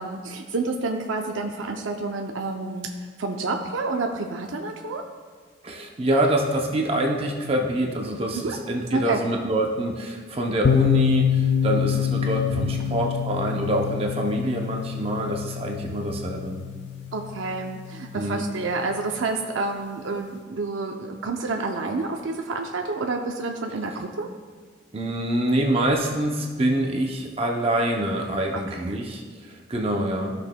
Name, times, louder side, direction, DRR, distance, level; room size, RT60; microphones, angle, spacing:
voice 1, 0.0-2.9 3.2-5.0 8.4-8.6 8.9-9.2 17.1-24.3 28.5-29.0, right 3 dB, 90° right, 3 dB, 0.6 m, -29 dB
voice 2, 5.6-16.6 18.1-18.4 24.9-30.3, right 1 dB, 30° right, 1 dB, 0.6 m, -25 dB
sound 1, 10.6-18.3, left 9 dB, 65° left, 0.5 m, -26 dB
13.5 x 6.0 x 2.2 m, 1.5 s
head